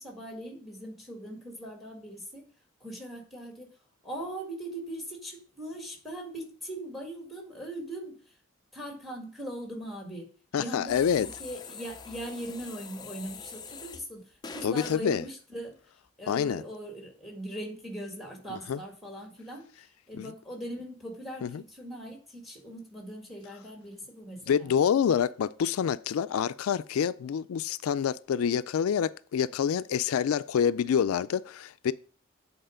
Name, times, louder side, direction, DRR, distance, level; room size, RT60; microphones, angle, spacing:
voice 1, 0.0-2.5 2.8-3.7 4.0-8.2 8.7-10.3 10.6-14.2 14.5-15.8 16.2-24.7, right 1 dB, ahead, 1.7 m, -40 dB
voice 2, 10.5-11.3 14.6-15.2 16.3-16.6 18.5-18.8 20.1-20.3 21.4-21.6 24.5-31.9, left 8 dB, 90° left, 0.3 m, -27 dB
sound 1, 10.9-14.1 14.4-15.1, left 5 dB, 20° left, 0.4 m, -44 dB
8.0 x 4.2 x 4.9 m
head